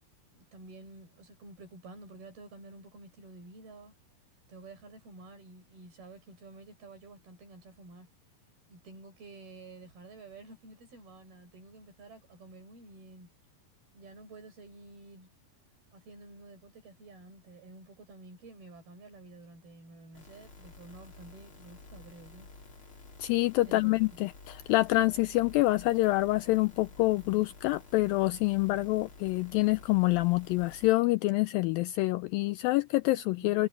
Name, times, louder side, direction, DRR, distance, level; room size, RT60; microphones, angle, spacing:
voice 1, 0.3-3.9 4.5-8.1 8.7-13.3 13.9-15.3 15.9-22.5 23.6-24.3 33.4-33.6, right 2 dB, 70° right, 9.6 m, -50 dB
sound 1, 20.1-30.9, left 3 dB, 35° left, 4.8 m, -52 dB
voice 2, 23.2-33.7, left 19 dB, 85° left, 2.0 m, -26 dB
omnidirectional pair, 4.5 m